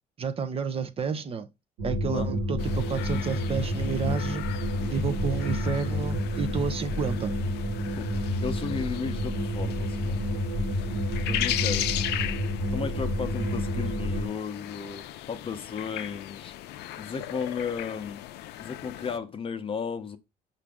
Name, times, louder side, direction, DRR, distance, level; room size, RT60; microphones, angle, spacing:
voice 1, 0.2-1.5 1.8-4.4 4.9-7.3, right 6 dB, 35° right, 0.5 m, -30 dB
sound 1, 1.8-14.3, left 1 dB, 90° right, 1.4 m, -29 dB
sound 2, 2.6-19.2, left 14 dB, 75° left, 0.4 m, -37 dB
voice 2, 7.9-10.2 11.3-12.4 12.7-16.5 17.0-18.2 18.6-20.2, left 6 dB, 30° left, 0.7 m, -35 dB
5.8 x 2.6 x 3.5 m
cardioid pair, 110°, 17 cm